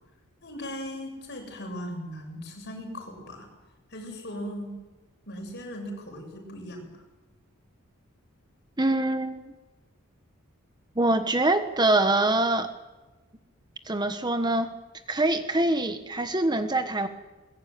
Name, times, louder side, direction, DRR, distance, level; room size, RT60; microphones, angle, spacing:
voice 1, 0.4-3.5 3.9-4.8 5.3-6.9, equal, 55° left, 3 dB, 7.7 m, -38 dB
voice 2, 8.8-9.4 11.0-12.7 13.8-14.7 15.1-17.1, right 2 dB, 20° right, 9 dB, 1.2 m, -24 dB
22.5 x 21.0 x 9.4 m, 1.2 s
head